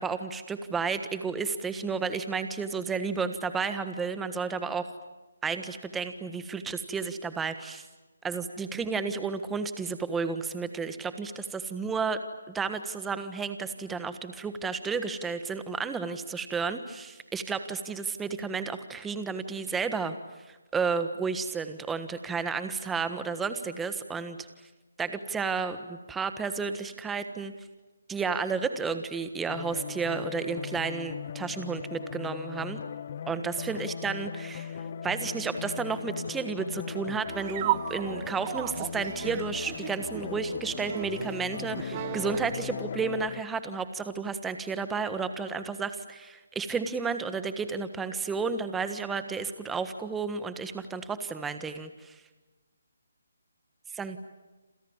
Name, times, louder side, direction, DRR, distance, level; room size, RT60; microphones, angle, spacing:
voice 1, 0.0-4.9 5.4-7.9 8.2-12.2 12.5-20.2 20.5-24.5 25.0-27.5 28.1-32.8 33.3-34.8 35.0-52.1 54.0-54.2, right 5 dB, 5° right, 10 dB, 1.4 m, -32 dB
sound 1, 29.5-43.4, left 7 dB, 40° left, 0.9 m, -38 dB
sound 2, 37.3-42.7, right 13 dB, 25° right, 1.2 m, -35 dB
28.5 x 27.5 x 7.3 m, 1.2 s
hypercardioid pair, 165°, 0 cm